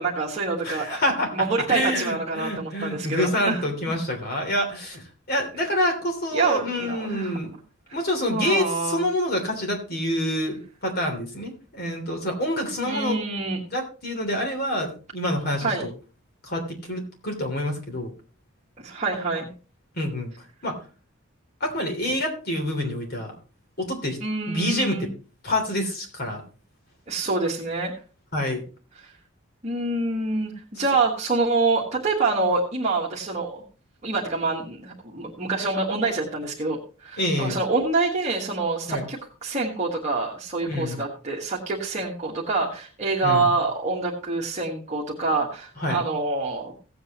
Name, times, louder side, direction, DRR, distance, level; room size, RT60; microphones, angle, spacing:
voice 1, 0.0-1.0 1.3-4.0 6.3-7.4 8.3-9.0 12.8-13.6 15.6-15.8 18.8-19.5 24.2-25.1 27.1-27.9 29.0-29.1 29.6-33.6 34.0-46.7, right 3 dB, 35° right, -4 dB, 1.6 m, -26 dB
voice 2, 0.6-1.3 1.7-7.5 7.9-13.2 13.7-15.9 16.4-18.1 19.9-20.3 20.6-20.8 21.6-23.3 23.8-24.2 24.5-25.1 25.4-26.4 28.3-28.6 37.2-37.6 38.9-39.1 40.6-41.0 43.2-43.6 45.8-46.0, left 1 dB, 50° left, 3 dB, 3.1 m, -27 dB
17.0 x 8.0 x 3.0 m, 0.36 s
head